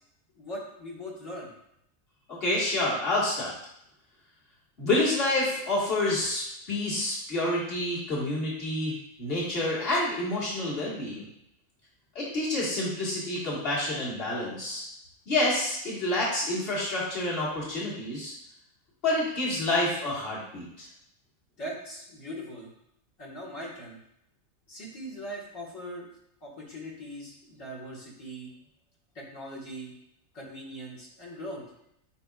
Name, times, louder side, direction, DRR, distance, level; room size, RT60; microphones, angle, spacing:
voice 1, 0.4-1.5 21.6-22.7 23.2-24.0 24.7-26.1 26.4-28.5 29.2-29.9 30.3-31.6, equal, 65° left, -5 dB, 1.9 m, -40 dB
voice 2, 2.3-3.5 4.8-11.3 12.2-14.9 15.3-18.3 19.0-20.9, left 1 dB, 45° left, -6 dB, 1.9 m, -28 dB
9.6 x 4.5 x 2.3 m, 0.78 s
omnidirectional pair, 1.4 m